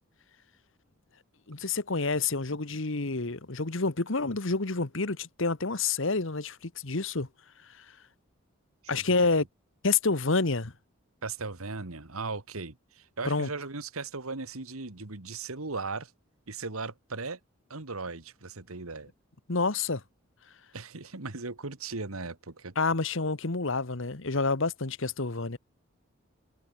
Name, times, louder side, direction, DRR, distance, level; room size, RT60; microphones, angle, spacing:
voice 1, 1.5-7.3 7.8-7.9 8.9-9.5 9.8-10.7 13.2-13.5 19.5-20.0 22.8-25.6, left 3 dB, 65° left, 1.4 m, -28 dB
voice 2, 11.2-16.1 16.5-17.4 17.7-19.1 20.7-22.7, right 3 dB, 90° right, 1.9 m, -37 dB
head